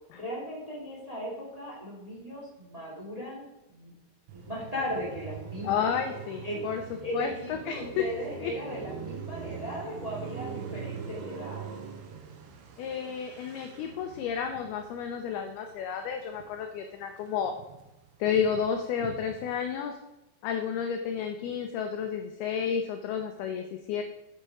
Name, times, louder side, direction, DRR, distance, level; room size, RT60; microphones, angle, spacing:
voice 1, 0.1-3.9 4.3-6.0 6.4-6.6 7.0-11.7, equal, 20° right, -4 dB, 1.1 m, -37 dB
Car passing by, 4.3-16.8 17.1-19.6, right 6 dB, 85° right, 3.6 m, -43 dB
voice 2, 5.6-6.8 7.1-8.0 8.4-8.5 12.8-17.5 18.2-20.0 20.4-24.0, left 7 dB, 90° left, 5 dB, 2.2 m, -31 dB
8.6 x 8.1 x 4.8 m, 0.98 s
omnidirectional pair, 5.4 m